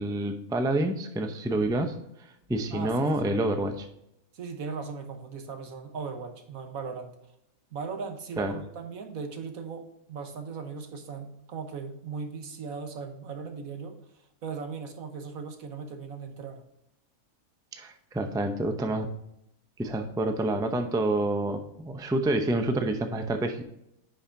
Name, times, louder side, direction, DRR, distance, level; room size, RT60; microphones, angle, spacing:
voice 1, 0.0-3.9 8.4-8.6 17.7-19.1 19.8-23.6, right 1 dB, 5° right, 6 dB, 0.4 m, -28 dB
voice 2, 2.7-3.3 4.3-7.1 7.7-13.9 14.4-16.6, right 5 dB, 80° right, 5 dB, 1.5 m, -38 dB
10.0 x 5.6 x 2.7 m, 0.80 s
omnidirectional pair, 1.4 m